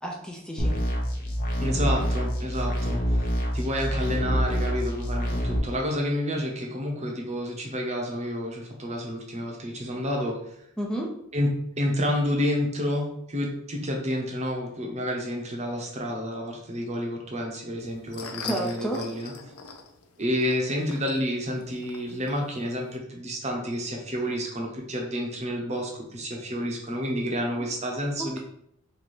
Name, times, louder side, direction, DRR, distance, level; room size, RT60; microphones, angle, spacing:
voice 1, 0.0-0.8 10.8-11.1 18.4-19.0 28.2-28.4, right 1 dB, 5° left, 0 dB, 0.5 m, -31 dB
sound 1, 0.6-5.6, equal, 40° left, 0.8 m, -26 dB
voice 2, 1.6-3.2 3.5-10.4 11.3-11.5 11.8-19.3 20.2-28.4, equal, 30° right, 0 dB, 0.8 m, -29 dB
sound 2, 17.8-23.0, left 5 dB, 85° left, 0.5 m, -43 dB
3.2 x 2.7 x 4.2 m, 0.73 s
head